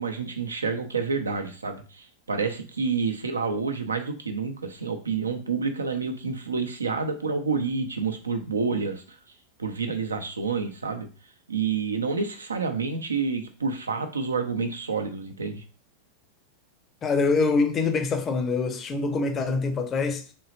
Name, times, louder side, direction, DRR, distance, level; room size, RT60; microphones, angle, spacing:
voice 1, 0.0-9.2 9.6-11.1 11.5-15.6, right 5 dB, 75° right, 0.6 m, -29 dB
voice 2, 17.0-20.3, left 4 dB, 25° left, 0.6 m, -24 dB
3.6 x 3.2 x 2.9 m
figure-of-eight pair, 90°, 0 cm